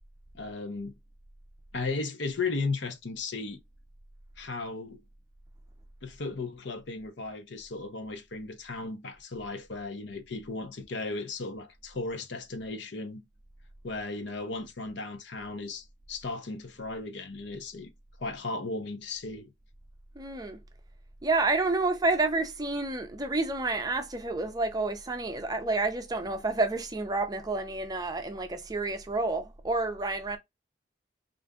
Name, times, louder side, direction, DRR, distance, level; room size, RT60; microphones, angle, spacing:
voice 1, 0.3-0.9 1.7-3.6 4.4-5.0 6.0-13.2 13.8-17.9 18.2-19.5, left 3 dB, 70° left, 0.7 m, -35 dB
voice 2, 20.2-20.6 21.2-30.4, right 3 dB, 20° right, 0.5 m, -29 dB
3.7 x 2.5 x 3.5 m
head